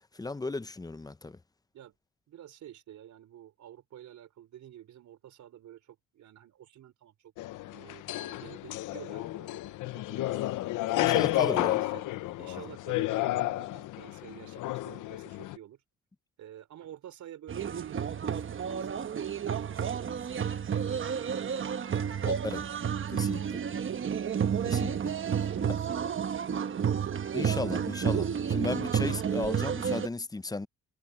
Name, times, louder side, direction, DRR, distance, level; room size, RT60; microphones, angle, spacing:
voice 1, 0.1-1.4 10.9-11.8 22.3-22.6 23.1-23.4 24.6-25.1 25.7-25.8 27.3-30.7, left 3 dB, 10° left, 0.8 m, -35 dB
voice 2, 2.3-7.3 7.7-10.5 11.1-12.1 12.4-15.8 16.4-20.5 20.8-22.7 23.0-24.6 25.3-27.1, right 11 dB, 70° right, 4.3 m, -50 dB
sound 1, 7.4-15.6, left 16 dB, 85° left, 0.9 m, -31 dB
sound 2, 17.5-30.1, right 7 dB, 40° right, 1.2 m, -31 dB
cardioid pair, 90°, 30 cm